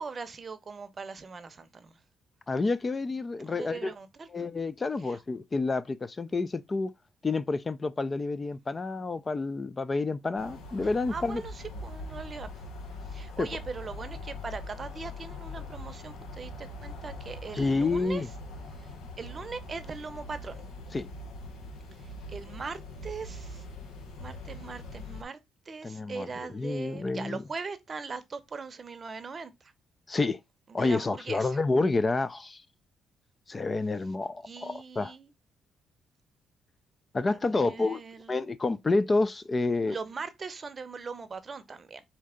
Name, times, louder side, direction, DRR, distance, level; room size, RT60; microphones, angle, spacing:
voice 1, 0.0-1.9 3.4-4.3 5.0-5.2 10.8-12.5 13.1-18.2 18.8-20.7 21.9-23.6 24.2-25.4 25.7-29.7 30.7-31.6 34.4-35.3 37.5-38.3 39.9-42.0, right 4 dB, 35° right, 0.7 m, -40 dB
voice 2, 2.5-3.9 4.3-6.9 7.2-11.4 13.4-13.5 17.5-18.3 20.9-21.1 25.8-27.4 30.1-30.4 30.7-32.6 33.5-35.1 37.1-38.0 38.3-40.0, left 3 dB, 30° left, 0.3 m, -29 dB
sound 1, 10.4-25.2, left 1 dB, 85° left, 1.0 m, -42 dB
4.4 x 2.7 x 3.6 m
cardioid pair, 90°, 0 cm